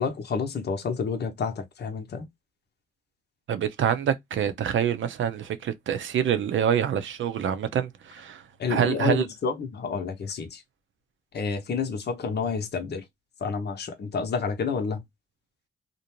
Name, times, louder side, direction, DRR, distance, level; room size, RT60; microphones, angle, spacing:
voice 1, 0.0-2.3 8.6-10.6 11.3-13.0 13.4-15.0, left 5 dB, 50° left, 0.7 m, -29 dB
voice 2, 3.5-8.4 8.7-9.2, right 9 dB, 65° right, 0.6 m, -26 dB
2.6 x 2.1 x 2.9 m
supercardioid pair, 45°, 21 cm